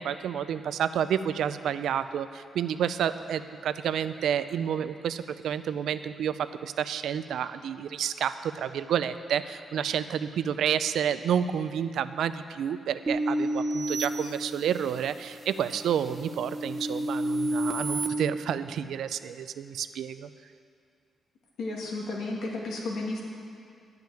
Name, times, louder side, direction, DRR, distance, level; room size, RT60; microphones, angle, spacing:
voice 1, 0.0-20.3, right 9 dB, 80° right, 12 dB, 0.4 m, -30 dB
sound 1, 13.1-15.0 15.5-18.1, right 1 dB, 25° right, 0.7 m, -30 dB
voice 2, 21.6-23.2, left 2 dB, 85° left, -2 dB, 2.3 m, -33 dB
11.5 x 5.9 x 8.9 m, 2.4 s
wide cardioid pair, 175°, 0 cm